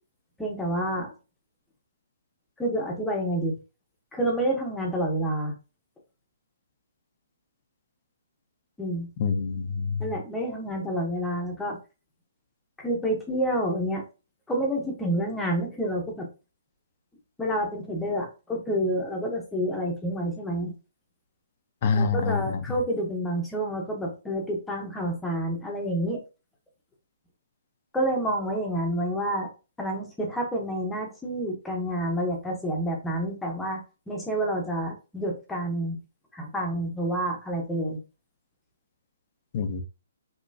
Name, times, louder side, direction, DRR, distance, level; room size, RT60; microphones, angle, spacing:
voice 1, 0.4-1.1 2.6-3.6 4.1-5.5 8.8-9.1 10.0-11.8 12.8-14.0 14.5-16.3 17.4-20.7 21.9-26.2 27.9-29.5 29.8-33.8 34.1-36.0 36.3-38.0, right 1 dB, 5° left, 0 dB, 0.9 m, -28 dB
voice 2, 9.2-10.1 21.8-22.6 39.5-39.8, left 5 dB, 35° left, 8 dB, 0.7 m, -26 dB
5.3 x 3.0 x 2.7 m, 0.31 s
hypercardioid pair, 170°, 0 cm